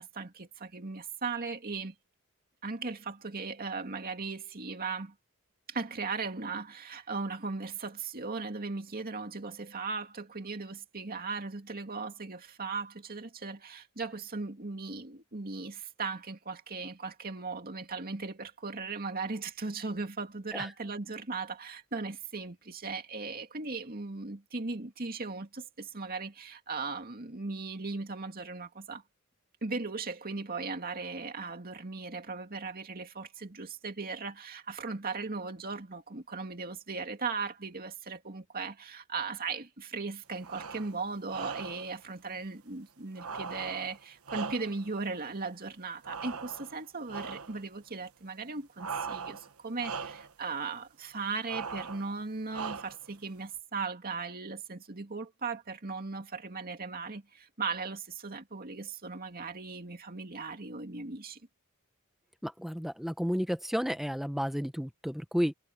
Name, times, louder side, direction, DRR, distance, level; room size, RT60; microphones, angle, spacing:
voice 1, 0.0-1.9 2.6-5.1 5.7-29.0 29.6-61.4, right 4 dB, 45° right, 2.3 m, -38 dB
sound 1, 40.4-40.9 41.3-41.9 43.2-44.9 46.0-46.8 47.1-47.6 48.8-49.5 49.8-50.3 51.5-52.1 52.5-53.1, right 5 dB, 75° right, 1.3 m, -39 dB
voice 2, 62.4-65.5, equal, ahead, 1.2 m, -32 dB
head